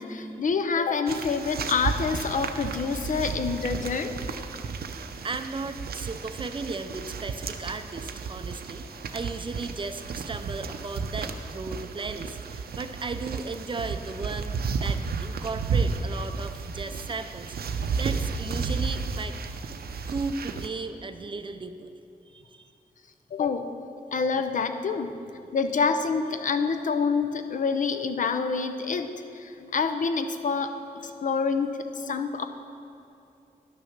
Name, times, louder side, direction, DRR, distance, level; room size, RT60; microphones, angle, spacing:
voice 1, 0.0-4.1 23.3-23.7 24.1-25.1 25.5-32.5, left 5 dB, 55° left, 8 dB, 0.6 m, -27 dB
sound 1, 1.1-20.7, right 5 dB, 85° right, 0.6 m, -33 dB
voice 2, 5.2-19.3 20.1-21.9 22.3-22.7, right 3 dB, 30° right, 8 dB, 0.4 m, -36 dB
11.0 x 6.4 x 5.9 m, 2.7 s
wide cardioid pair, 150°, 16 cm